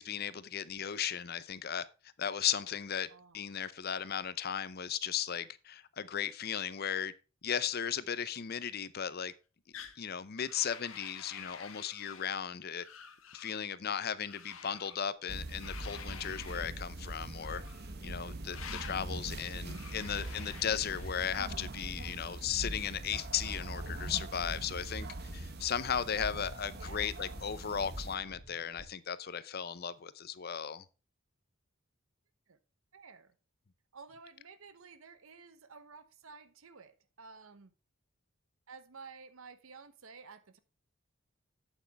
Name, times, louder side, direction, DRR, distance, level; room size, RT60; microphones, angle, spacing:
voice 1, 0.0-1.9 2.2-3.1 3.3-7.1 7.4-9.3 10.0-12.8 13.3-17.6 18.0-25.1 25.3-30.8, left 8 dB, 50° left, 0.6 m, -36 dB
voice 2, 3.1-3.6 18.8-19.7 26.7-27.1 32.5-32.6 32.9-33.3 33.9-37.7 38.7-40.6, right 5 dB, 80° right, 0.9 m, -53 dB
sound 1, 9.7-10.0 10.4-12.4 12.8-13.6 14.2-15.0 15.6-16.7 17.4-17.9 18.5-19.0 19.7-21.4, left 7 dB, 75° left, 1.3 m, -49 dB
sound 2, 15.2-28.8, equal, 10° right, 3.4 m, -49 dB
sound 3, 15.3-28.2, right 2 dB, 50° right, 1.0 m, -42 dB
8.2 x 8.0 x 3.4 m
head